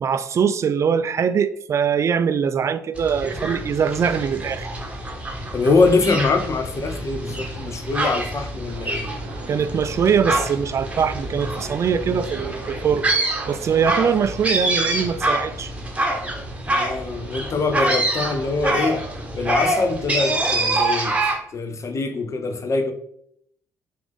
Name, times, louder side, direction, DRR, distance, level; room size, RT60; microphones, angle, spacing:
voice 1, 0.0-4.7 9.5-13.1 13.5-15.7, right 7 dB, 35° right, 0.4 m, -22 dB
sound 1, 2.9-21.4, right 2 dB, 15° right, 1.0 m, -26 dB
voice 2, 5.5-9.1 16.7-19.0 19.4-21.2 21.5-22.9, left 3 dB, 40° left, 0.6 m, -23 dB
sound 2, 8.7-15.4, right 3 dB, 70° right, 0.8 m, -41 dB
5.9 x 2.5 x 3.5 m
figure-of-eight pair, 40°, 8 cm